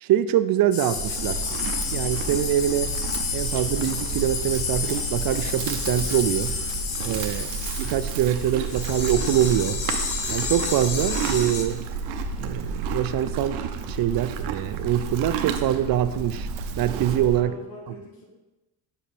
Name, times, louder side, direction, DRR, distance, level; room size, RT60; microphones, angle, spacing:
voice 1, 0.0-1.4 1.9-2.9 3.3-6.6 7.0-7.5 7.8-9.8 10.3-11.8 12.4-13.6 13.9-16.5 16.8-17.6 17.9-18.0, right 11 dB, 50° right, 13 dB, 0.5 m, -24 dB
sound 1, 0.7-11.6, left 6 dB, 70° left, 1.2 m, -31 dB
Livestock farm animals working animals, 0.9-17.4, right 5 dB, 85° right, 0.7 m, -31 dB
voice 2, 7.0-7.4 17.0-18.2, left 2 dB, 50° left, -2 dB, 2.2 m, -43 dB
6.3 x 5.0 x 4.3 m, 1.0 s
supercardioid pair, 75°, 46 cm